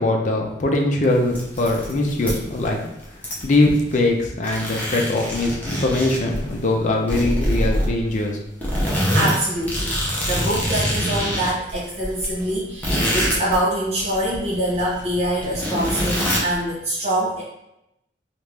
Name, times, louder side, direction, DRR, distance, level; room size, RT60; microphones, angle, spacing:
voice 1, 0.0-2.8 3.4-8.4, left 2 dB, 45° left, 1 dB, 0.5 m, -21 dB
sound 1, 1.2-2.7 3.0-4.2 4.4-6.6 7.1-8.2 8.6-13.6 14.0-16.6, equal, 10° left, 0.7 m, -25 dB
voice 2, 9.1-17.4, right 1 dB, 35° right, -8 dB, 0.7 m, -24 dB
3.0 x 2.4 x 3.3 m, 0.84 s
head